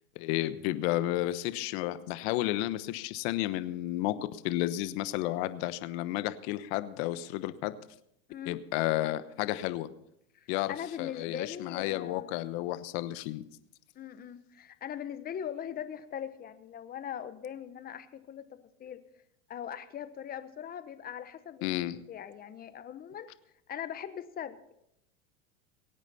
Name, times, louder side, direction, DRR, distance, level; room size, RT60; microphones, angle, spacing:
voice 1, 0.2-7.7 8.5-9.9 10.5-13.4 21.6-22.0, left 15 dB, 55° left, 13 dB, 1.1 m, -32 dB
voice 2, 10.3-12.3 13.9-19.0 19.5-23.3 23.7-24.8, left 9 dB, 25° left, 12 dB, 0.9 m, -41 dB
23.0 x 9.0 x 4.2 m, 0.77 s
supercardioid pair, 130°, 39 cm